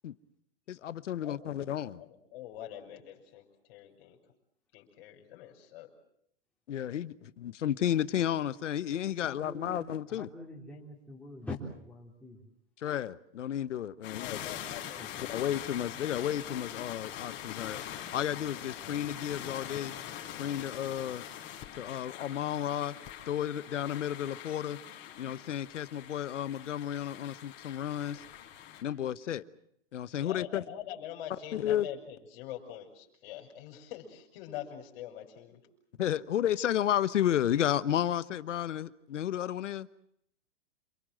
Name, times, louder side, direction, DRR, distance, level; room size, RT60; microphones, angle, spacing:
voice 1, 0.7-2.0 6.7-10.3 12.8-14.4 15.3-17.8 18.1-19.9 20.4-21.2 21.8-22.9 23.3-24.8 25.2-28.2 28.8-29.4 29.9-30.6 31.5-31.9 36.0-39.9, left 10 dB, 85° left, 1.2 m, -32 dB
voice 2, 1.2-1.6 2.0-4.2 4.7-5.9 14.2-15.2 30.1-35.6, left 11 dB, 50° left, 5.7 m, -44 dB
voice 3, 9.2-9.8 10.1-12.4, left 2 dB, 5° left, 3.7 m, -45 dB
sound 1, 14.0-28.8, left 11 dB, 30° left, 4.7 m, -43 dB
28.0 x 21.5 x 7.6 m
hypercardioid pair, 145°, 35 cm